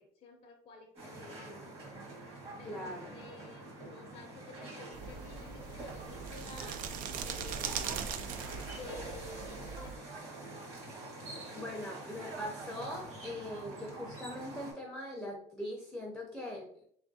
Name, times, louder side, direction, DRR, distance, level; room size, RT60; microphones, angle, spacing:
voice 1, 0.0-1.7 2.6-6.9 7.2-8.1 8.7-10.1, left 3 dB, 45° left, 0 dB, 0.6 m, -52 dB
sound 1, 0.9-14.7, right 2 dB, 45° right, 1.5 m, -46 dB
voice 2, 2.6-3.1 11.5-16.8, left 1 dB, ahead, -2 dB, 0.6 m, -41 dB
sound 2, 4.9-10.0, right 7 dB, 70° right, 0.4 m, -40 dB
3.4 x 3.4 x 2.7 m, 0.64 s
cardioid pair, 135°, 15 cm